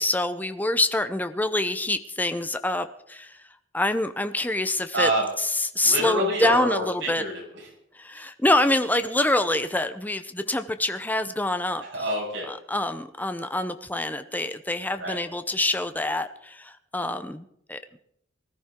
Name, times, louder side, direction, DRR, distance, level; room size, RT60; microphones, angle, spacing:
voice 1, 0.0-3.4 3.7-5.1 5.5-7.2 7.9-11.8 12.5-17.8, left 1 dB, 10° left, 10 dB, 0.7 m, -26 dB
voice 2, 4.9-5.3 5.8-7.3 8.1-8.3 11.8-12.5 15.0-15.2, right 1 dB, 70° right, -1 dB, 6.3 m, -27 dB
19.5 x 13.5 x 3.8 m, 0.71 s
head